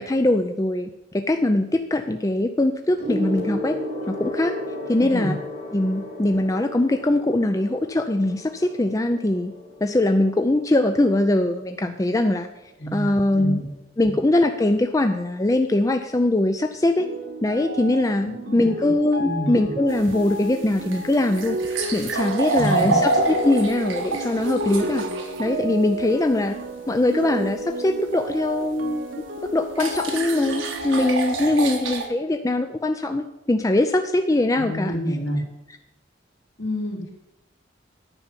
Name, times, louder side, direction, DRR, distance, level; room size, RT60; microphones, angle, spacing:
voice 1, 0.0-3.8 4.1-4.5 4.9-5.4 5.7-9.5 9.8-12.5 12.9-13.6 14.0-17.1 17.4-18.3 18.5-21.6 21.9-25.0 25.4-26.6 26.9-29.1 29.5-35.0, left 1 dB, 15° left, 6 dB, 0.4 m, -22 dB
Gong, 3.0-12.7 13.7-13.9, left 1 dB, 50° left, 2.8 m, -35 dB
voice 2, 5.0-5.3 12.8-13.7 18.2-18.9 19.2-19.5 22.5-23.0 34.6-35.4 36.6-37.1, equal, 70° left, -1 dB, 2.7 m, -28 dB
sound 1, 17.0-31.1, right 1 dB, 70° right, 1.3 m, -32 dB
sound 2, 19.9-25.5 28.6-28.7 29.7-32.1, right 3 dB, 90° right, 1.5 m, -27 dB
9.8 x 5.6 x 8.2 m, 0.92 s
head